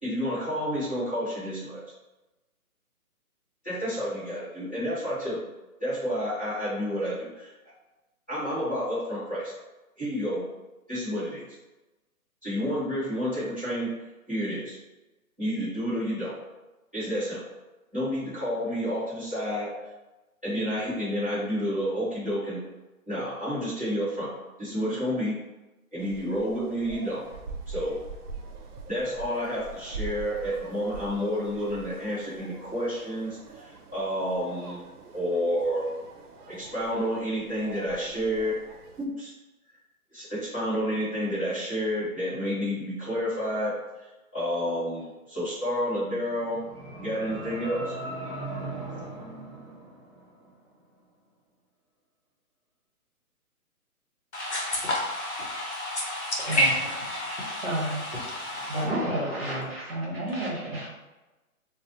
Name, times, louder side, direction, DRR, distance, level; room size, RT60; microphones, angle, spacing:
voice 1, 0.0-1.8 3.6-5.4 5.8-7.5 8.3-9.5 10.0-10.4 10.9-11.4 12.4-13.9 14.3-14.8 15.4-16.3 16.9-17.4 17.9-19.7 20.4-22.6 23.1-24.3 24.6-25.4 25.9-27.2 27.7-28.0 28.9-34.8 35.1-35.9 36.5-38.6 39.0-39.3 40.1-46.6 47.0-47.9, equal, 10° right, -20 dB, 0.7 m, -30 dB
sound 1, 26.0-39.1, right 4 dB, 85° right, 0.7 m, -43 dB
sound 2, 46.3-50.5, right 2 dB, 5° left, 1.0 m, -38 dB
voice 2, 54.3-58.9, left 1 dB, 50° left, -3 dB, 0.7 m, -29 dB
voice 3, 57.6-58.1 58.5-60.9, right 1 dB, 40° right, -6 dB, 1.0 m, -30 dB
2.5 x 2.0 x 2.7 m, 1.1 s
hypercardioid pair, 175°, 44 cm